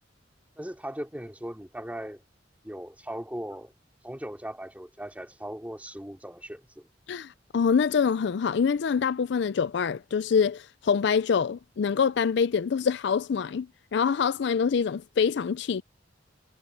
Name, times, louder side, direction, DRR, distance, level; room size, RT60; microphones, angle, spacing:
voice 1, 0.6-2.2 2.6-3.7 4.0-6.9, right 1 dB, 10° right, 3.2 m, -38 dB
voice 2, 7.1-15.8, left 6 dB, 65° left, 0.4 m, -25 dB
head